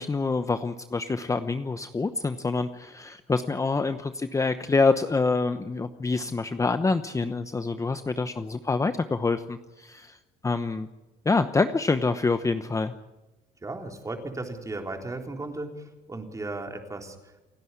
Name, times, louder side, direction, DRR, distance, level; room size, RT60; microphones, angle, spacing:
voice 1, 0.0-10.2 10.4-10.9 11.2-12.9, left 3 dB, 20° left, 10 dB, 0.9 m, -26 dB
voice 2, 13.6-17.3, right 2 dB, 20° right, 3 dB, 3.7 m, -36 dB
29.0 x 10.5 x 9.7 m, 1.1 s
cardioid pair, 110°, 17 cm